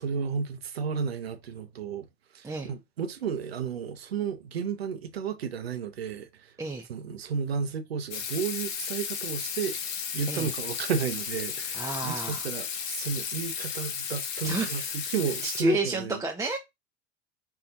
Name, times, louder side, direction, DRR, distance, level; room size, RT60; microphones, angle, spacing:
voice 1, 0.0-2.1 2.3-6.5 6.9-9.8 10.1-16.2, right 6 dB, 85° right, 0.6 m, -33 dB
Water tap faucet / Sink (filling or washing), 8.1-15.6, left 7 dB, 55° left, 0.8 m, -34 dB
voice 2, 11.7-12.5 14.4-14.9 15.4-16.6, right 2 dB, 10° right, 0.5 m, -30 dB
4.5 x 2.3 x 2.6 m
figure-of-eight pair, 70°, 30 cm